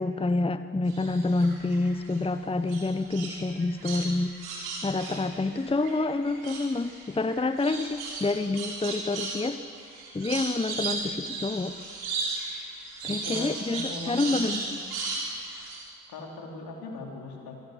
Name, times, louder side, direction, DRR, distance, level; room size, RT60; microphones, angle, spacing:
voice 1, 0.0-9.6 10.1-11.7 13.0-14.6, left 2 dB, 15° left, 11 dB, 0.9 m, -28 dB
sound 1, 0.9-2.2 2.7-6.0 6.3-15.8, right 3 dB, 75° right, 5.9 m, -35 dB
voice 2, 13.2-14.7 16.1-17.6, left 2 dB, 70° left, 0 dB, 4.3 m, -40 dB
26.5 x 18.0 x 8.1 m, 2.5 s
hypercardioid pair, 45°, 38 cm